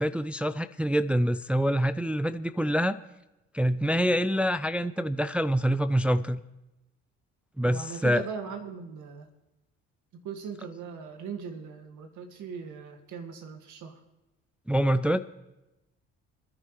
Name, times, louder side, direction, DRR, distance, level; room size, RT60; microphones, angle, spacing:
voice 1, 0.0-3.0 3.5-6.4 7.6-8.2 14.7-15.2, equal, 5° right, 12 dB, 0.4 m, -26 dB
voice 2, 7.6-9.3 10.1-14.0, right 6 dB, 70° right, 6 dB, 2.0 m, -39 dB
26.5 x 10.0 x 3.2 m, 0.97 s
supercardioid pair, 70°, 31 cm